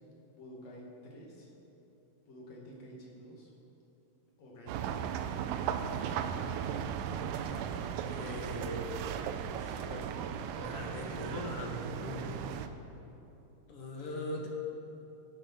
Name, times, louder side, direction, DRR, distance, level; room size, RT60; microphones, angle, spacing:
voice 1, 0.3-0.8 1.1-1.5 2.3-3.5 4.4-5.2, equal, 55° left, -2 dB, 2.9 m, -50 dB
sound 1, 4.7-12.7, right 8 dB, 80° right, 2.1 m, -36 dB
voice 2, 7.3-7.7 8.0-9.2 9.5-12.4 13.7-14.5, left 2 dB, 75° left, 0 dB, 1.3 m, -41 dB
17.5 x 7.0 x 5.8 m, 2.9 s
omnidirectional pair, 4.1 m